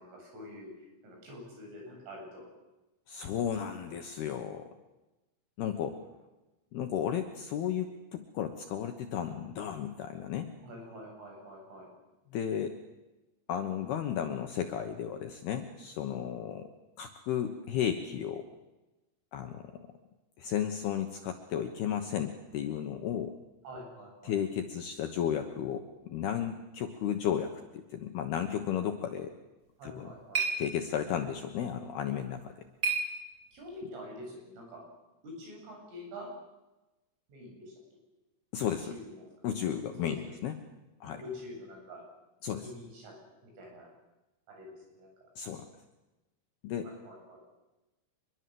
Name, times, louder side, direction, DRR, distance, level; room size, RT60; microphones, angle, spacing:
voice 1, 0.0-2.5 10.6-11.9 23.6-24.3 29.8-30.4 33.5-34.8 35.2-36.3 37.3-37.8 38.9-39.5 40.0-40.2 41.0-42.0 42.6-43.1 43.4-43.9 44.5-45.1 46.8-47.4, left 1 dB, 70° right, 0 dB, 10.5 m, -46 dB
voice 2, 3.1-4.7 5.6-6.0 6.7-10.5 12.3-12.7 13.5-16.7 17.0-18.5 19.3-19.8 20.4-23.4 24.2-29.3 29.8-30.1 30.6-32.5 38.5-38.9 39.4-40.5 41.0-41.2 42.4-42.6 45.4-45.7 46.6-46.9, left 9 dB, 70° left, 6 dB, 2.5 m, -34 dB
sound 1, 29.6-33.8, right 4 dB, 25° right, 2.9 m, -37 dB
25.5 x 22.5 x 7.8 m, 1.1 s
omnidirectional pair, 6.0 m